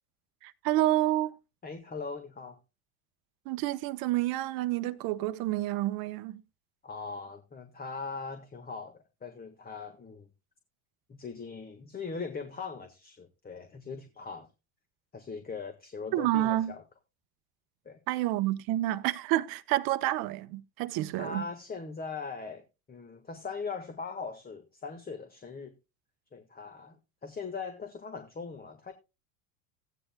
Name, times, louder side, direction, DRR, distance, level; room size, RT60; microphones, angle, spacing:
voice 1, 0.4-1.3 3.5-6.4 16.1-16.7 18.1-21.4, right 15 dB, 55° right, 1.0 m, -29 dB
voice 2, 1.6-2.6 6.8-10.3 11.1-14.5 15.1-16.8 17.8-18.0 21.2-25.7 26.3-28.9, left 4 dB, 20° left, 1.6 m, -40 dB
15.5 x 9.9 x 2.3 m
hypercardioid pair, 85°, 42 cm